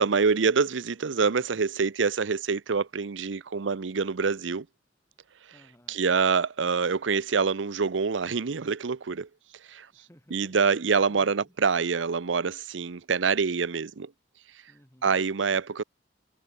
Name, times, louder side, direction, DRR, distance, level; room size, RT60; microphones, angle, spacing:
voice 1, 0.0-4.7 5.9-9.3 9.7-9.9 10.3-14.1 15.0-15.8, right 5 dB, 80° right, 0.7 m, -26 dB
voice 2, 5.5-6.0 9.9-10.5 11.1-11.5 14.7-15.2, left 1 dB, 15° left, 2.9 m, -56 dB
head